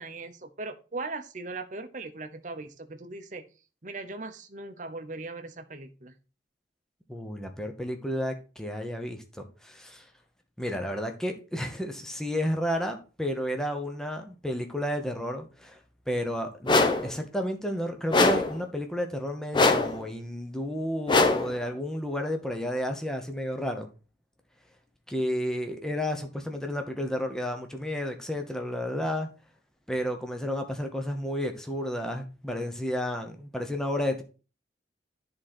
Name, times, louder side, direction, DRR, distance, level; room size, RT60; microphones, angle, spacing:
voice 1, 0.0-3.4 3.8-6.1, right 3 dB, 45° right, 0.8 m, -39 dB
voice 2, 7.1-10.1 10.6-15.8 16.1-23.9 25.1-29.3 29.9-34.2, equal, 5° left, 0.9 m, -32 dB
sound 1, 16.7-17.1 18.1-18.6 19.5-20.0 21.1-21.6, left 3 dB, 25° left, 0.7 m, -22 dB
10.5 x 3.8 x 4.2 m
head